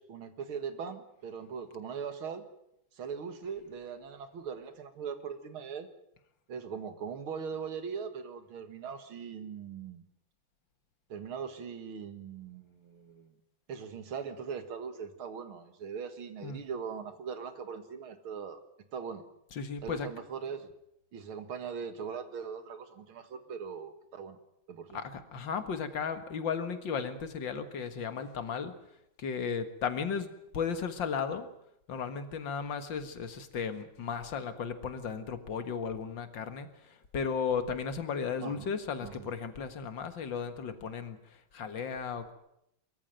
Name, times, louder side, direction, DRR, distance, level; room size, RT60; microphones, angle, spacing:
voice 1, 0.0-2.4 2.9-5.9 6.5-10.0 11.1-13.3 13.7-18.6 18.9-19.2 19.8-20.7 21.1-24.4 24.7-25.0 38.4-38.7 39.0-39.3, right 6 dB, 90° right, 10 dB, 2.5 m, -40 dB
voice 2, 19.5-20.1 24.9-28.7 29.2-31.5 31.9-42.3, left 6 dB, 65° left, 9 dB, 2.4 m, -35 dB
22.5 x 14.5 x 9.2 m, 0.80 s
omnidirectional pair, 2.2 m